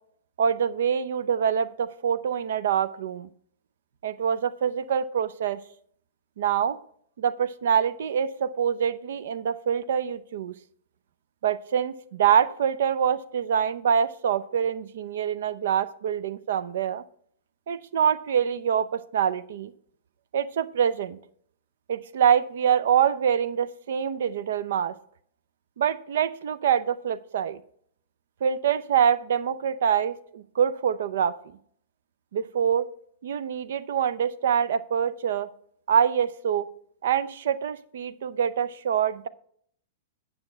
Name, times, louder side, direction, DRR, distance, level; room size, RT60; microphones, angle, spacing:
voice 1, 0.4-3.3 4.0-5.6 6.4-6.8 7.2-10.6 11.4-17.0 17.7-19.7 20.3-21.2 21.9-24.9 25.8-27.6 28.4-31.4 32.3-32.9 33.2-35.5 35.9-36.7 37.0-39.3, right 8 dB, 60° right, 16 dB, 0.6 m, -25 dB
9.7 x 6.3 x 4.5 m, 0.64 s
figure-of-eight pair, 100°, 0 cm